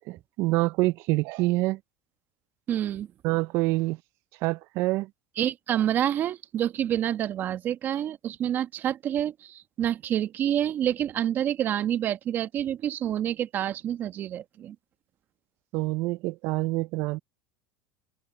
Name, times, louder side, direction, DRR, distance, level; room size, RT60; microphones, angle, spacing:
voice 1, 0.1-1.8 3.2-4.0 4.4-5.1 15.7-17.2, right 20 dB, 60° right, 0.5 m, -26 dB
voice 2, 2.7-3.1 5.4-14.7, right 10 dB, 40° right, 1.3 m, -28 dB
supercardioid pair, 115°, 5 cm